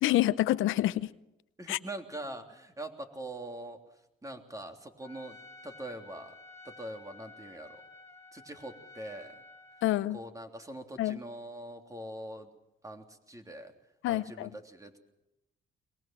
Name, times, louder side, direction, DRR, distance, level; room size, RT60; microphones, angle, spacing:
voice 1, 0.0-1.1 1.7-1.8 9.8-10.2 11.0-11.2 14.0-14.5, left 15 dB, 85° left, 15 dB, 0.7 m, -27 dB
voice 2, 1.6-3.8 4.2-5.4 5.6-6.3 6.6-7.8 8.3-9.4 10.1-12.5 12.8-13.7 14.1-15.0, right 1 dB, 15° right, 5 dB, 3.3 m, -43 dB
Trumpet, 5.0-9.9, left 3 dB, 15° left, 4.7 m, -52 dB
23.0 x 21.0 x 7.6 m, 0.89 s
cardioid pair, 90°, 20 cm